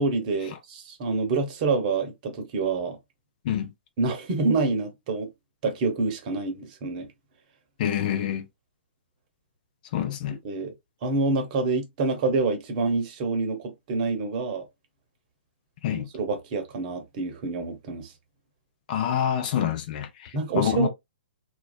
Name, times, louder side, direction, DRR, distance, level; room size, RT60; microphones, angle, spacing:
voice 1, 0.0-3.0 4.0-5.3 5.6-7.1 10.3-10.7 11.0-14.6 15.9-18.1 20.3-20.9, right 3 dB, 40° right, 0.8 m, -27 dB
voice 2, 7.8-8.4 9.9-10.4 15.8-16.1 18.9-20.9, left 10 dB, 45° left, 0.5 m, -27 dB
2.5 x 2.2 x 2.4 m
hypercardioid pair, 130°, 6 cm